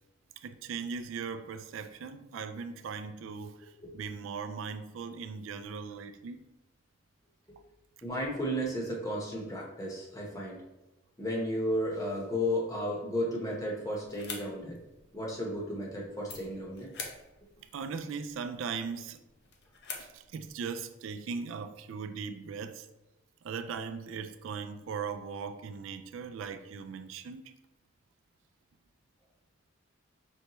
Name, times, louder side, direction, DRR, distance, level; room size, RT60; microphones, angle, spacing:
voice 1, 0.4-6.4 17.6-19.2 20.0-22.9 23.4-27.5, right 5 dB, 75° right, 0.3 m, -39 dB
voice 2, 8.0-10.6 11.2-14.8 15.1-16.9, equal, 15° left, 0.9 m, -33 dB
sound 1, 13.9-20.6, left 5 dB, 55° left, 0.7 m, -47 dB
5.3 x 3.3 x 3.0 m
head